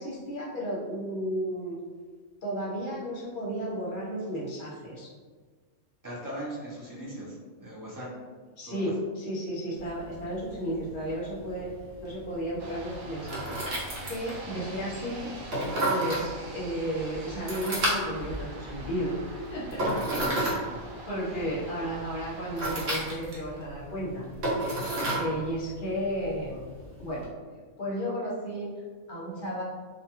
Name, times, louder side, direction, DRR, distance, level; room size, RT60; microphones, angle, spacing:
voice 1, 0.0-1.8 2.4-5.1 8.6-11.7 12.0-15.3 15.9-19.8 20.4-20.7 21.1-24.3 25.1-26.6 27.0-27.3 27.8-28.7 29.1-29.6, equal, 45° left, -6 dB, 0.8 m, -33 dB
voice 2, 6.0-8.1 8.7-8.8 19.6-20.3 21.2-21.5, equal, 30° right, -7 dB, 0.4 m, -39 dB
sound 1, 9.8-27.3, right 1 dB, 60° right, 0.9 m, -34 dB
sound 2, 12.6-23.1, right 1 dB, 85° right, 1.0 m, -44 dB
2.4 x 2.3 x 2.8 m, 1.5 s
omnidirectional pair, 1.3 m